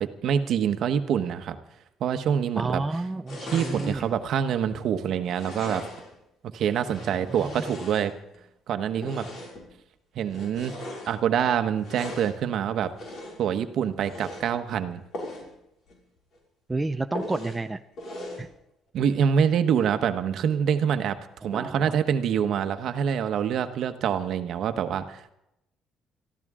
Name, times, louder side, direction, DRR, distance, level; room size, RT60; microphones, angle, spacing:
voice 1, 0.0-1.6 2.0-2.8 3.5-5.8 6.5-8.1 8.7-9.2 10.1-12.9 13.4-15.0 18.9-25.3, right 8 dB, 60° right, 9 dB, 1.1 m, -26 dB
voice 2, 2.5-4.1 7.4-7.6 16.7-17.8 18.4-18.5 21.4-21.9, right 2 dB, 15° right, 8 dB, 0.5 m, -30 dB
sound 1, 3.3-4.1 5.2-6.2 6.7-8.4 9.0-9.7 10.3-11.1 11.8-12.4 13.0-13.5 14.0-14.5 15.1-15.5 15.9-16.0 16.3-16.4 17.1-17.6 18.0-18.5, left 1 dB, 50° left, 5.5 m, -39 dB
23.5 x 14.5 x 3.7 m, 0.83 s
cardioid pair, 135°, 0 cm